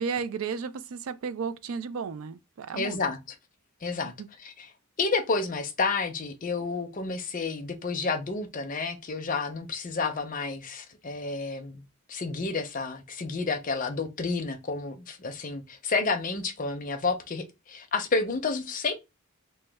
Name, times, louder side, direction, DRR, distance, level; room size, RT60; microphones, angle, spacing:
voice 1, 0.0-3.1 4.0-4.3, right 5 dB, 75° right, 0.4 m, -34 dB
voice 2, 2.7-3.2 3.8-4.1 5.0-11.8 12.1-18.9, left 4 dB, 35° left, 0.5 m, -30 dB
3.0 x 2.2 x 3.3 m
head